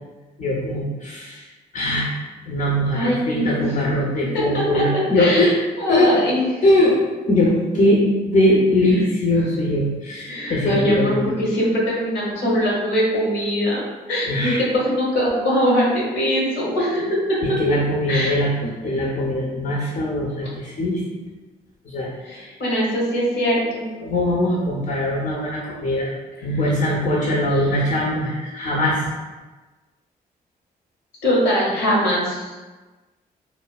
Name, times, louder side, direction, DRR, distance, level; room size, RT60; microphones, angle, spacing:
voice 1, 0.4-1.5 1.7-2.1 2.4-5.5 5.9-6.1 6.6-7.0 7.3-11.3 14.3-14.6 17.4-21.0 21.9-22.5 24.0-26.1 26.4-29.0, left 1 dB, 50° left, -4 dB, 0.6 m, -21 dB
voice 2, 2.9-3.6 4.3-4.8 5.2-6.4 10.3-13.8 14.1-14.5 14.9-17.4 18.1-18.3 22.2-23.9 27.7-27.8 31.2-32.5, equal, 80° left, -5 dB, 1.0 m, -22 dB
3.1 x 2.1 x 2.3 m, 1.2 s
supercardioid pair, 55°, 18 cm